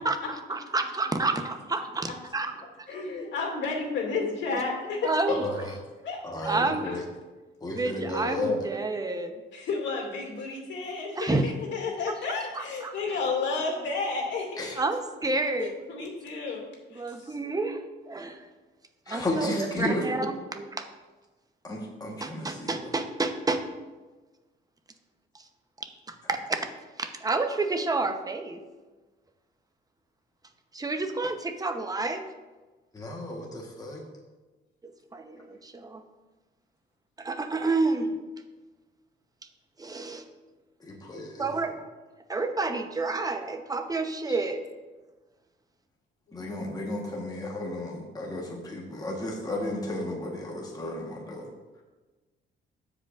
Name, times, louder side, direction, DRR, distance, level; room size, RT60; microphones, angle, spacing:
voice 1, 0.0-2.5 5.0-5.4 6.4-7.0 7.7-9.3 11.2-11.4 12.5-12.9 14.8-15.7 16.9-17.8 18.1-18.4 19.1-20.8 22.1-23.6 25.3-25.4 25.8-28.6 30.7-32.3 34.8-36.0 37.2-38.1 39.8-40.3 41.4-41.9 42.3-44.6, right 3 dB, 20° right, 6 dB, 0.9 m, -30 dB
voice 2, 2.9-5.7 6.0-6.5 6.8-6.9 9.5-14.7 15.6-16.6 16.9-17.3, left 4 dB, 65° left, 0 dB, 2.4 m, -32 dB
voice 3, 5.3-5.6 6.2-7.0 7.6-8.6 14.6-14.7 19.1-20.3 21.6-22.7 32.9-34.0 40.8-41.6 44.3-44.4 46.3-51.5, left 1 dB, 20° left, -1 dB, 1.3 m, -33 dB
15.0 x 5.1 x 2.5 m, 1.2 s
cardioid pair, 90°, 20 cm